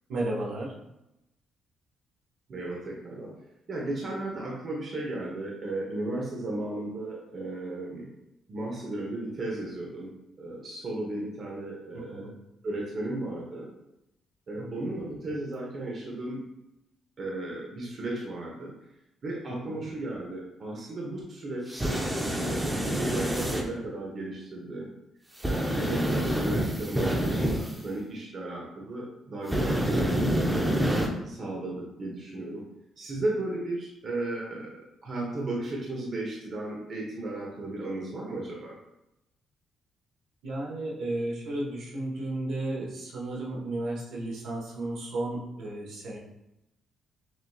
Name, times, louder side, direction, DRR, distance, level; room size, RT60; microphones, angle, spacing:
voice 1, 0.1-0.7 11.9-12.3 14.6-14.7 19.6-19.8 25.6-25.9 40.4-46.2, right 2 dB, 75° right, -3 dB, 1.3 m, -33 dB
voice 2, 2.5-3.3 3.7-8.1 8.5-12.3 12.6-13.7 14.5-16.5 17.2-18.7 19.2-22.0 22.4-24.9 25.4-30.5 31.2-32.7 33.0-38.7, right 2 dB, 50° right, -2 dB, 1.0 m, -35 dB
sound 1, 21.7-23.6 25.4-27.7 29.5-31.1, right 1 dB, 10° right, 0.7 m, -27 dB
6.3 x 2.9 x 2.4 m, 0.89 s
cardioid pair, 90°, 0 cm